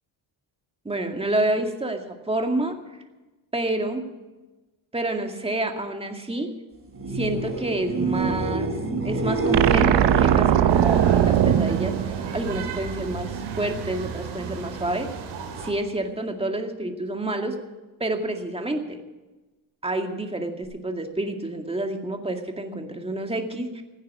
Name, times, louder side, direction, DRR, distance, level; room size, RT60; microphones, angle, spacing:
voice 1, 0.8-2.8 3.5-4.1 4.9-6.5 7.1-8.7 9.0-15.1 15.6-17.6 18.0-19.0 19.8-23.8, right 2 dB, 10° right, 4 dB, 2.2 m, -28 dB
sound 1, 6.9-12.7 13.0-13.6 20.6-20.7, right 3 dB, 30° right, 4.2 m, -28 dB
sound 2, 9.5-12.9, right 10 dB, 65° right, 1.0 m, -20 dB
sound 3, 10.7-15.7, right 5 dB, 80° right, 3.6 m, -34 dB
15.5 x 9.6 x 8.3 m, 1.1 s
cardioid pair, 85°, 46 cm